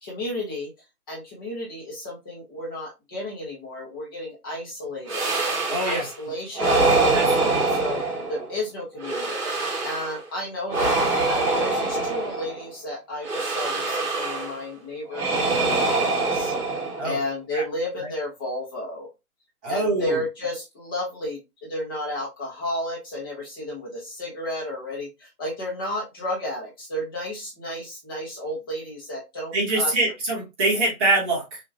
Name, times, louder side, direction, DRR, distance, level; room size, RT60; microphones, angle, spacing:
voice 1, 0.0-0.7 1.1-5.3 5.7-7.2 7.4-8.0 8.3-9.4 9.8-16.5 17.0-19.1 19.7-29.9, left 1 dB, 15° left, 1.2 m, -32 dB
sound 1, 5.1-6.2 6.5-8.5 9.0-10.2 10.7-12.7 13.2-14.6 15.1-17.2, right 3 dB, 25° right, 3.0 m, -24 dB
voice 2, 5.7-6.0 7.1-7.6 17.0-17.2 17.5-17.6 19.6-20.2 29.5-31.6, right 2 dB, 10° right, 1.0 m, -24 dB
6.2 x 2.9 x 2.8 m
hypercardioid pair, 170°, 46 cm